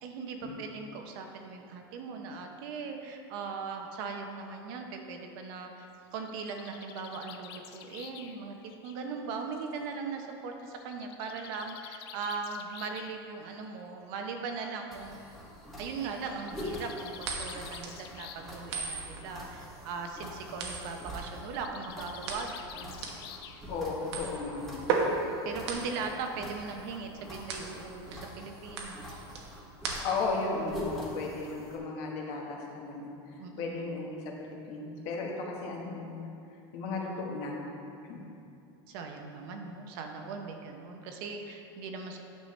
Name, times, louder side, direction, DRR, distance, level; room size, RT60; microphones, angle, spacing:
voice 1, 0.0-15.4 15.8-23.0 25.4-29.2 33.4-33.8 38.9-42.2, right 4 dB, 55° right, 3 dB, 0.8 m, -39 dB
Bird, 5.9-9.7 10.8-13.2 14.2-14.3 14.7-14.8 15.0-15.1 16.2-18.6 18.9-19.3 21.4-23.9, left 9 dB, 65° left, 0.5 m, -49 dB
sound 1, 14.9-31.8, left 1 dB, ahead, 1.2 m, -45 dB
sound 2, 17.2-30.4, right 5 dB, 85° right, 1.1 m, -37 dB
voice 2, 23.7-24.9 25.7-25.8 30.0-36.3 36.7-37.6 38.0-38.2, left 3 dB, 50° left, -1 dB, 1.2 m, -35 dB
9.4 x 5.7 x 3.2 m, 2.6 s
supercardioid pair, 145°, 14 cm